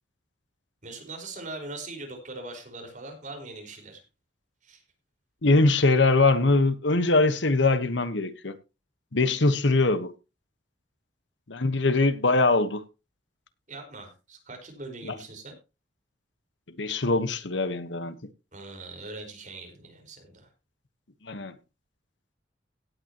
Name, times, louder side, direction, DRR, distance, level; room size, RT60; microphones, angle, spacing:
voice 1, 0.8-4.0 4.6-4.8 13.7-15.6 18.5-20.5, right 2 dB, 45° right, 4.8 m, -41 dB
voice 2, 5.4-8.5 9.1-10.1 11.5-12.8 15.1-15.2 16.8-18.2 21.2-21.5, left 3 dB, 85° left, 1.2 m, -22 dB
17.0 x 9.2 x 2.9 m
head